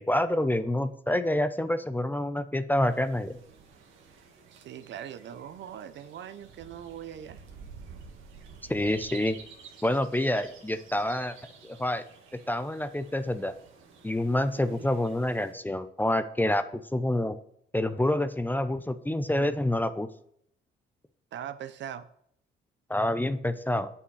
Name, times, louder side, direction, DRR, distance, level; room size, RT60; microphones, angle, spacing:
voice 1, 0.0-3.4 8.7-9.4 9.8-11.3 11.6-12.0 12.5-13.5 14.0-17.4 17.7-20.1 22.9-23.9, left 1 dB, 10° left, 12 dB, 0.5 m, -27 dB
sound 1, 2.8-15.5, right 5 dB, 85° right, 1.5 m, -50 dB
voice 2, 4.5-7.4 14.5-14.9 21.3-22.1, right 9 dB, 65° right, 12 dB, 0.7 m, -41 dB
7.7 x 5.7 x 4.8 m, 0.70 s
cardioid pair, 90°, 20 cm